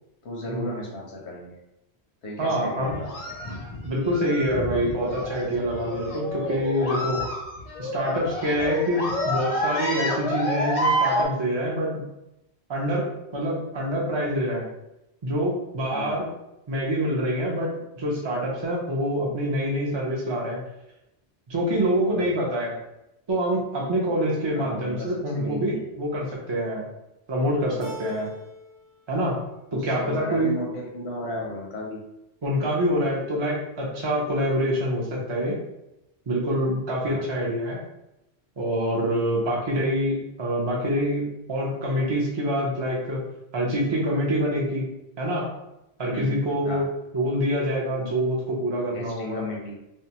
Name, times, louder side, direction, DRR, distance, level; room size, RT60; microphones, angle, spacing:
voice 1, 0.2-1.5 2.2-3.3 15.9-16.2 22.1-22.4 24.5-25.8 29.7-32.0 37.0-37.3 46.1-46.4 46.6-46.9 48.9-49.8, left 1 dB, 90° left, -2 dB, 0.9 m, -35 dB
voice 2, 2.4-2.9 3.8-7.2 7.8-12.0 12.7-14.7 15.2-16.3 16.7-17.7 18.0-20.6 21.5-22.8 23.3-26.9 27.3-28.3 29.1-29.4 29.7-30.5 32.4-35.6 36.3-37.8 38.6-43.2 43.5-44.8 45.2-45.5 46.0-46.9 47.1-49.4, equal, 40° right, -4 dB, 0.4 m, -26 dB
sound 1, 2.8-11.2, equal, 45° left, 0.5 m, -29 dB
Keyboard (musical), 27.8-28.9 29.2-30.0, equal, 90° right, 0.9 m, -41 dB
2.6 x 2.2 x 2.8 m, 0.90 s
omnidirectional pair, 1.1 m